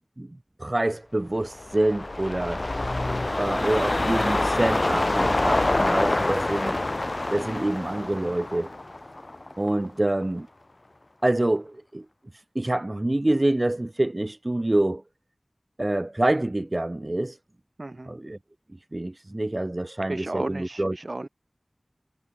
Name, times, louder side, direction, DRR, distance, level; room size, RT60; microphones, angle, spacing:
voice 1, 0.6-2.6 3.4-6.8 7.3-8.7 9.6-10.5 11.2-12.0 12.3-15.0 15.8-17.4 18.1-18.4 18.9-21.0, right 1 dB, 40° right, 1.3 m, -26 dB
sound 1, 1.4-9.9 10.2-10.3, left 2 dB, 55° left, 2.2 m, -26 dB
voice 2, 3.5-3.8 7.4-7.6 17.8-18.1 20.1-21.3, right 2 dB, 60° right, 0.8 m, -34 dB
wide cardioid pair, 50°, 0 cm